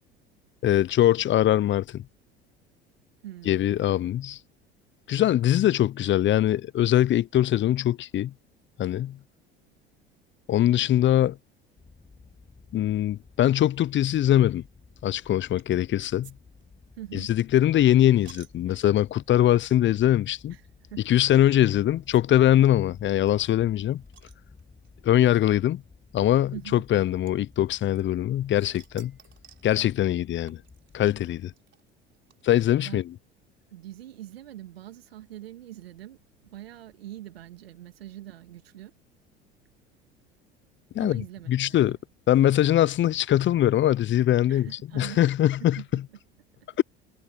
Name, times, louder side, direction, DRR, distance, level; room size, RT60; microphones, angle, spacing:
voice 1, 0.6-2.0 3.5-4.4 5.1-8.3 8.8-9.2 10.5-11.4 12.7-14.6 15.0-16.3 17.1-20.6 21.1-24.0 25.0-25.8 26.1-29.1 29.6-30.6 30.9-31.5 32.4-33.0 40.9-41.2 41.5-42.0 42.3-44.7 44.9-46.0 46.8-46.9, left 12 dB, 40° left, 0.8 m, -22 dB
voice 2, 3.2-3.8 17.0-17.3 20.5-21.1 26.5-26.8 32.8-33.0 33.7-38.9 41.0-42.0 44.5-45.3 45.6-46.0, right 13 dB, 85° right, 2.3 m, -43 dB
sound 1, 11.8-31.4, left 4 dB, 20° left, 7.1 m, -54 dB
sound 2, 15.6-15.9 16.2-16.3 16.6-19.3 19.9-20.1 20.3-20.4 21.5-21.6 22.1-22.2 22.5-22.6 22.8-22.9 23.3-24.9 25.8-25.9 27.3-28.3 28.6-29.7 30.5-32.7, right 9 dB, 40° right, 4.4 m, -55 dB
hypercardioid pair, 65°, 30 cm